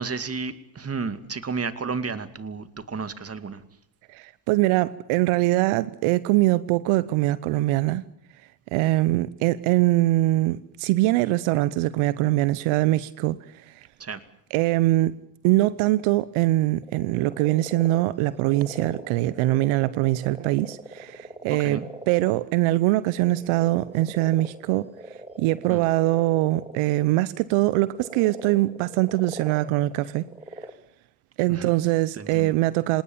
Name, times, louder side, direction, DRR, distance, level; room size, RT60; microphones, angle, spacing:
voice 1, 0.0-3.6 14.0-14.2 21.5-21.9 25.7-25.8 31.5-31.7 32.2-32.5, right 4 dB, 30° right, 2.4 m, -32 dB
voice 2, 4.1-8.0 8.7-13.9 14.5-15.1 15.4-21.8 22.1-24.9 25.4-30.3 31.4-33.0, right 17 dB, 75° right, 0.9 m, -23 dB
sound 1, 16.8-27.2 27.6-30.7, right 2 dB, 10° right, 3.0 m, -42 dB
26.5 x 19.5 x 7.3 m
supercardioid pair, 75°, 50 cm